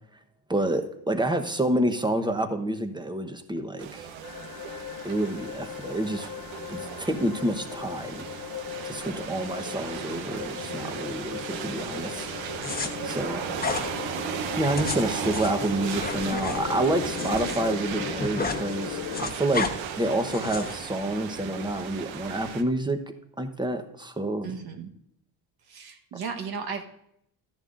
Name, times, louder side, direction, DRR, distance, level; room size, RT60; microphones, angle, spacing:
voice 1, 0.5-4.1 5.0-6.3 6.7-8.2 8.8-12.3 13.0-13.4 14.6-19.7 20.0-23.0 23.4-24.6, right 1 dB, 10° right, 7 dB, 1.0 m, -28 dB
sound 1, 3.8-22.6, right 7 dB, 80° right, 1.1 m, -36 dB
sound 2, 4.2-19.3, left 10 dB, 50° left, 0.7 m, -38 dB
sound 3, 12.6-12.9 13.6-13.9 14.6-17.6 17.9-18.6 18.9-19.7 20.3-20.8, left 4 dB, 20° left, 1.1 m, -32 dB
voice 2, 24.4-24.9 25.7-26.8, right 5 dB, 55° right, 4 dB, 1.2 m, -35 dB
13.0 x 10.5 x 2.6 m, 0.75 s
cardioid pair, 100°, 46 cm